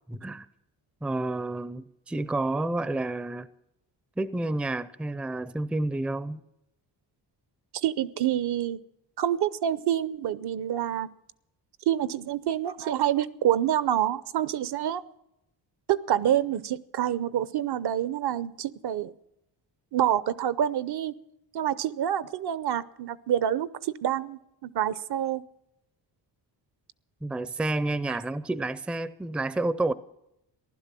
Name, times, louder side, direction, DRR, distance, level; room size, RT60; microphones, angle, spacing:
voice 1, 0.1-0.5 1.0-3.5 4.2-6.4 27.2-29.9, right 2 dB, 5° right, 0.5 m, -30 dB
voice 2, 7.7-8.8 9.2-11.1 11.9-15.0 15.9-19.1 19.9-21.1 21.5-25.4 28.1-28.2, right 11 dB, 65° right, 0.8 m, -27 dB
15.5 x 12.0 x 7.6 m
cardioid pair, 125°, 43 cm